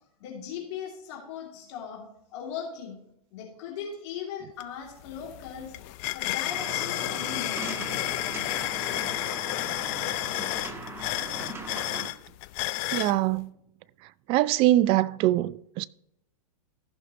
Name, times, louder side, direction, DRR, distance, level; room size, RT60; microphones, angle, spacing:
voice 1, 0.2-2.1 2.3-3.0 3.3-5.7 6.1-7.7, left 8 dB, 50° left, 2.5 m, -38 dB
sound 1, 4.6-4.7 5.0-13.2, left 18 dB, 35° left, 0.5 m, -31 dB
sound 2, 6.5-12.1, right 2 dB, 15° right, 1.3 m, -39 dB
voice 2, 12.9-13.5 14.3-15.9, right 15 dB, 30° right, 0.3 m, -23 dB
15.0 x 6.3 x 2.9 m
hypercardioid pair, 115°, 19 cm